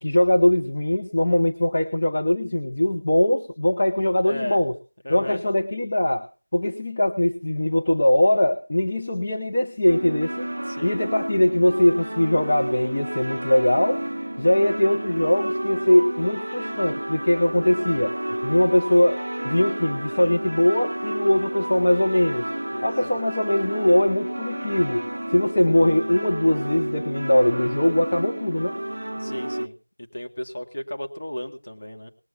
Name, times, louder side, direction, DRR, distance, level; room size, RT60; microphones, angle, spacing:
voice 1, 0.0-4.7 5.1-6.3 6.5-10.5 10.8-22.5 22.8-28.8, left 1 dB, 20° left, 2 dB, 0.9 m, -21 dB
voice 2, 4.2-4.6 5.0-5.4 10.7-11.0 22.7-23.2 29.2-32.1, equal, 35° left, 4 dB, 2.0 m, -35 dB
sound 1, 9.9-29.7, right 1 dB, 50° right, 0.6 m, -31 dB
20.0 x 7.5 x 5.8 m, 0.36 s
figure-of-eight pair, 180°, 0 cm